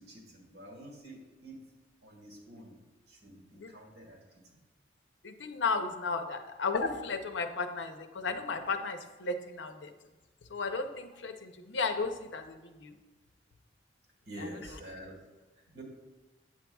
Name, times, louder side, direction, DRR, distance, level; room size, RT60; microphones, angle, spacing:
voice 1, 0.0-1.6 2.0-2.8 3.1-4.6 14.2-15.2 15.6-15.8, right 1 dB, 60° right, -1 dB, 1.9 m, -48 dB
voice 2, 5.2-9.9 10.5-13.0 14.4-14.8, left 4 dB, 70° left, 6 dB, 0.7 m, -34 dB
8.6 x 7.4 x 2.3 m, 1.2 s
head